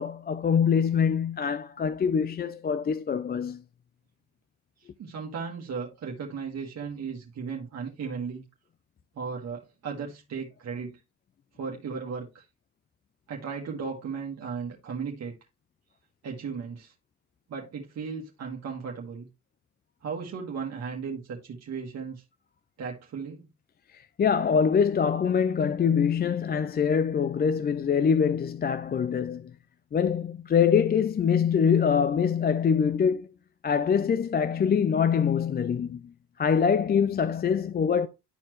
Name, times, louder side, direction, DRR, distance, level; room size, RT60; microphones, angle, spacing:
voice 1, 0.0-3.6 23.9-29.5 29.9-33.3 33.6-36.0 36.4-38.1, left 7 dB, 30° left, 0.5 m, -24 dB
voice 2, 4.8-8.4 9.1-11.0 11.6-12.4 13.3-15.3 16.2-16.9 17.5-19.3 20.0-22.2 22.8-23.5, right 5 dB, 60° right, 1.6 m, -36 dB
11.5 x 4.3 x 3.1 m
cardioid pair, 90°, 30 cm